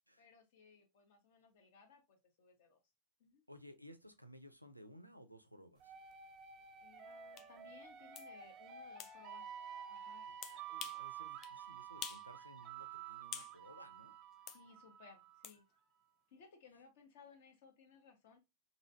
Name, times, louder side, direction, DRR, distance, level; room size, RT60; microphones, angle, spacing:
voice 1, 0.2-2.8 3.2-3.5 6.8-9.5 9.9-10.2 14.5-15.6 16.3-18.4, left 5 dB, 55° left, 0.9 m, -62 dB
voice 2, 3.5-5.9 10.2-14.1, equal, 90° right, 0.4 m, -58 dB
sound 1, 5.8-15.5, right 8 dB, 35° right, 0.5 m, -51 dB
sound 2, 7.4-7.5 8.1-8.3 9.0-9.1 10.4-11.0 11.4-11.6 12.0-12.3 12.6-13.5 14.5-14.6 15.4-15.6, left 9 dB, 35° left, 0.3 m, -47 dB
3.0 x 2.6 x 2.6 m
figure-of-eight pair, 90°, 0 cm